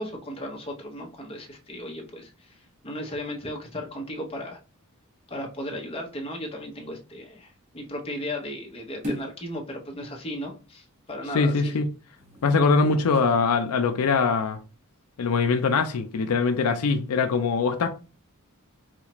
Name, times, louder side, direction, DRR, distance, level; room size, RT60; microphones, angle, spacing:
voice 1, 0.0-2.6 2.8-4.6 5.3-7.5 7.7-11.8, left 1 dB, 25° left, 0.8 m, -35 dB
sound 1, 9.0-9.5 12.1-13.4 14.0-14.1, equal, 35° right, 1.2 m, -37 dB
voice 2, 11.3-11.9 12.4-14.6 15.2-17.9, left 4 dB, 85° left, 0.4 m, -22 dB
4.1 x 2.4 x 2.9 m
head